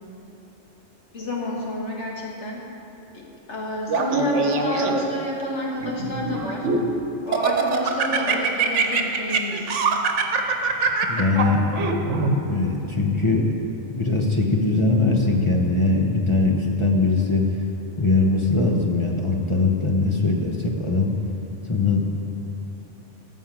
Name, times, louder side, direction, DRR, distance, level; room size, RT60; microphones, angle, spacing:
voice 1, 1.1-2.6 3.1-6.7 7.2-9.7, left 1 dB, 70° left, -3 dB, 2.1 m, -29 dB
Laughter, 3.9-5.2 5.8-6.9 7.3-12.4, right 4 dB, 75° right, 1.2 m, -23 dB
voice 2, 11.1-12.0 12.4-13.5 13.9-17.6 18.0-21.1 21.7-22.0, left 3 dB, 25° left, 0 dB, 0.9 m, -21 dB
14.5 x 5.6 x 7.5 m, 3.0 s
omnidirectional pair, 1.2 m